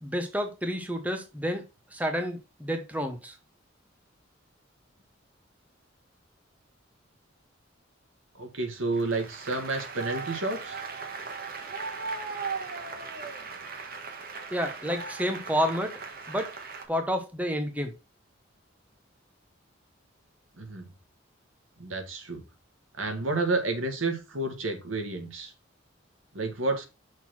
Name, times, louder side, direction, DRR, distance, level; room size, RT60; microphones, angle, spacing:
voice 1, 0.0-1.6 1.9-3.4 14.5-16.0 16.3-16.5 16.9-17.9, equal, 10° right, 1.0 m, -30 dB
voice 2, 8.4-10.8 20.6-20.8 21.8-22.4 23.0-25.5 26.3-26.8, right 3 dB, 85° right, 2.0 m, -30 dB
Applause, 8.9-16.9, right 4 dB, 45° right, 1.4 m, -38 dB
6.3 x 4.0 x 5.9 m
head